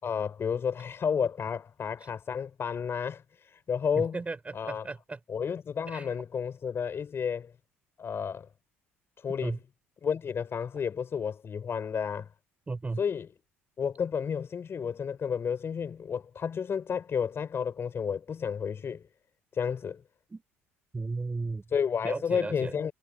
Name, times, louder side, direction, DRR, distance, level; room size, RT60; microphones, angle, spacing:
voice 1, 0.0-4.2 4.5-4.9 5.3-7.5 8.0-8.5 9.2-9.6 10.0-12.3 13.0-13.3 13.8-19.1 19.5-20.0 21.7-22.9, left 7 dB, 35° left, 5.2 m, -31 dB
voice 2, 4.0-5.2 5.9-6.1 9.4-9.6 12.7-13.0 20.3-20.4 20.9-21.6 22.0-22.7, right 3 dB, 20° right, 6.1 m, -35 dB
figure-of-eight pair, 60°, 7 cm